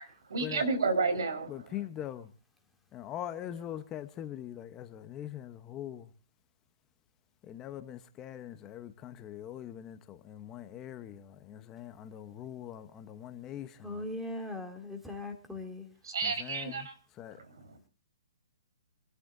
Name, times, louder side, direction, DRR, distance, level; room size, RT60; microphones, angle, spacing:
voice 1, 0.0-1.5 16.0-16.9 17.4-17.8, right 4 dB, 80° right, 4.6 m, -31 dB
voice 2, 1.5-2.3 2.9-6.1 7.4-14.0 16.2-16.9 17.2-17.4, left 11 dB, 20° left, 1.0 m, -42 dB
voice 3, 13.8-15.9, left 2 dB, ahead, 2.8 m, -39 dB
27.5 x 13.0 x 2.7 m
hypercardioid pair, 150°, 2 cm